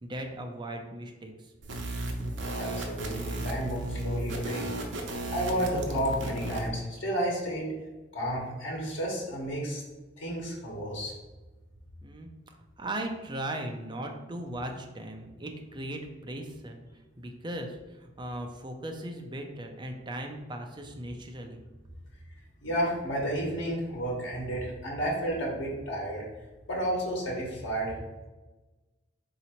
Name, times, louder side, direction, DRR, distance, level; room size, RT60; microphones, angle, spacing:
voice 1, 0.0-1.5 12.0-12.3 12.8-16.8 17.2-21.6, right 1 dB, 25° right, 3 dB, 0.5 m, -38 dB
sound 1, 1.6-6.7, right 2 dB, 70° right, 0.7 m, -34 dB
voice 2, 2.6-4.6 5.3-7.7 8.1-9.8 10.2-11.1 22.6-26.2 26.7-27.9, equal, 85° left, -3 dB, 1.2 m, -31 dB
4.0 x 2.8 x 4.4 m, 1.2 s
head